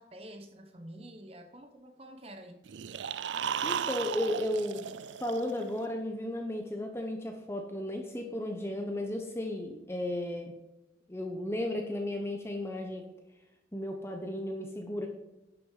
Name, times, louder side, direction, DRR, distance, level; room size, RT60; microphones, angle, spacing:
voice 1, 0.0-2.7, right 1 dB, 35° right, 6 dB, 1.0 m, -48 dB
sound 1, 2.7-5.8, right 8 dB, 90° right, 0.4 m, -35 dB
voice 2, 3.6-10.5 11.1-13.0 13.3-13.4 13.7-15.1, left 1 dB, 15° left, 3 dB, 0.9 m, -34 dB
11.5 x 6.8 x 4.9 m, 0.98 s
head